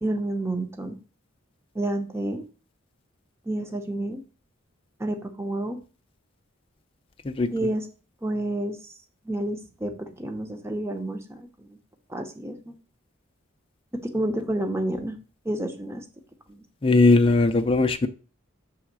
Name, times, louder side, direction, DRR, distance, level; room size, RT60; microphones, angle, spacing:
voice 1, 0.0-1.0 1.7-2.4 3.5-4.2 5.0-5.8 7.5-7.9 8.2-8.8 9.3-11.8 12.1-12.7 14.0-15.2 15.4-16.0 16.5-16.6, right 1 dB, 10° right, 5 dB, 0.8 m, -29 dB
voice 2, 16.8-18.1, left 3 dB, 25° left, 6 dB, 0.4 m, -19 dB
6.3 x 3.5 x 6.0 m, 0.36 s
head